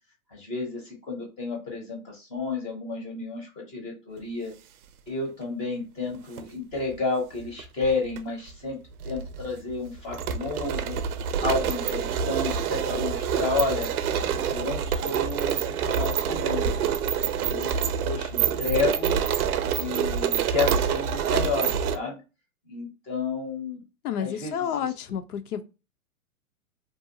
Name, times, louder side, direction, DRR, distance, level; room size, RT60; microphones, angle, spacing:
voice 1, 0.3-4.5 5.1-8.8 9.0-11.0 11.4-13.9 14.5-16.7 17.4-17.8 18.0-19.2 19.7-22.2 22.7-23.8 24.2-24.9, left 3 dB, 15° left, 0.6 m, -31 dB
sound 1, 6.1-6.4 7.4-8.2 8.5-8.6 9.0-22.0, right 7 dB, 85° right, 0.5 m, -27 dB
voice 2, 24.0-25.6, left 9 dB, 85° left, 0.6 m, -30 dB
2.6 x 2.3 x 2.6 m
hypercardioid pair, 150°, 44 cm